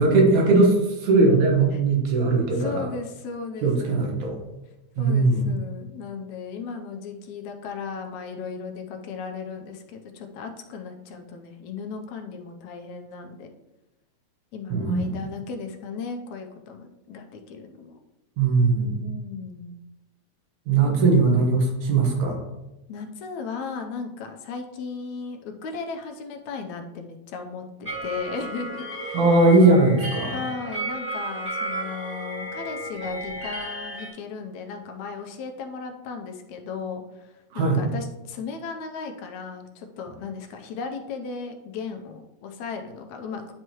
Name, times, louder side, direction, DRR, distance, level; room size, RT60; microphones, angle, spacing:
voice 1, 0.0-2.8 3.6-4.4 5.0-5.5 14.7-15.2 18.4-19.1 20.7-22.4 29.1-30.3 37.5-37.9, right 3 dB, 80° right, 0 dB, 2.7 m, -19 dB
voice 2, 2.5-4.2 5.0-13.5 14.5-18.0 19.0-19.7 20.8-20.9 22.9-29.3 30.3-43.5, left 5 dB, 80° left, 4 dB, 2.0 m, -36 dB
sound 1, 27.9-34.1, right 2 dB, 5° right, 1.5 m, -33 dB
10.5 x 4.5 x 3.0 m, 0.97 s
omnidirectional pair, 3.3 m